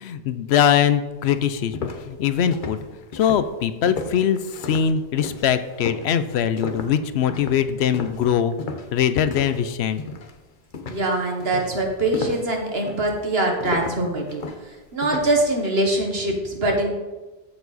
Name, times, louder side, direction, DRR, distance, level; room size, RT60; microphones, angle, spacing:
voice 1, 0.0-2.8 3.1-8.5 8.9-10.0, left 8 dB, 85° left, 12 dB, 0.8 m, -22 dB
sound 1, 1.2-9.7 10.0-10.4 10.7-15.4, left 4 dB, 55° left, 0.9 m, -34 dB
voice 2, 10.9-14.4 14.9-17.0, right 2 dB, 70° right, 1 dB, 1.8 m, -23 dB
14.0 x 4.8 x 4.0 m, 1.1 s
omnidirectional pair, 1.1 m